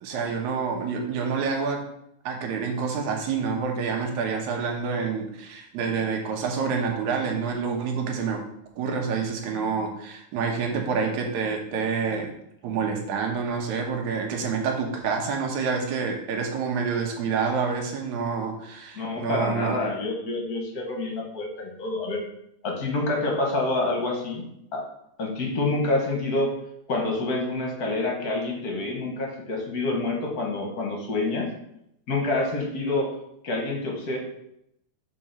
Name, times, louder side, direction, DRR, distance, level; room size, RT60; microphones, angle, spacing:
voice 1, 0.0-1.8 2.2-8.4 8.8-12.3 12.6-19.8, right 5 dB, 80° right, 2 dB, 2.4 m, -28 dB
voice 2, 18.9-22.2 22.6-24.4 24.7-24.8 25.2-26.5 26.9-31.5 32.1-33.1 33.4-34.2, left 2 dB, 45° left, 1 dB, 1.2 m, -27 dB
6.1 x 4.1 x 5.9 m, 0.76 s
omnidirectional pair, 3.4 m